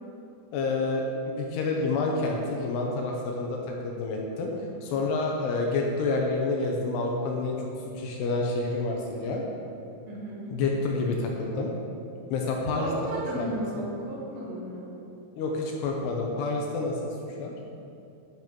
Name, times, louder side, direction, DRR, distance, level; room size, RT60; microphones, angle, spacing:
voice 1, 0.5-7.6 8.0-9.4 10.5-11.7 12.3-12.9 13.4-13.5 15.4-17.0 17.4-17.5, left 3 dB, 80° left, 0 dB, 2.6 m, -28 dB
voice 2, 10.1-10.4 12.7-14.9, right 1 dB, 75° right, -5 dB, 3.3 m, -34 dB
10.5 x 6.7 x 3.0 m, 2.6 s
omnidirectional pair, 5.1 m